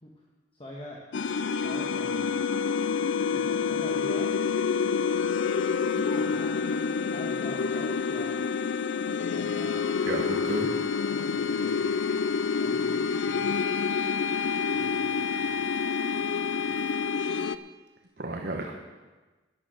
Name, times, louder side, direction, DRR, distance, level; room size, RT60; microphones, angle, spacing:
voice 1, 0.5-1.0 1.6-2.3 3.3-4.6 5.9-6.7 7.1-8.4 9.3-9.9 11.1-13.7 14.7-15.6 16.1-16.8, left 1 dB, 30° left, -2 dB, 1.4 m, -44 dB
sound 1, 1.1-17.6, left 5 dB, 75° left, 0.5 m, -28 dB
voice 2, 10.1-10.7 18.2-18.7, right 1 dB, 50° right, 1 dB, 1.1 m, -32 dB
Wind instrument woodwind instrument, 13.5-17.4, equal, 85° right, 2.5 m, -47 dB
12.5 x 9.5 x 6.3 m, 1.2 s
head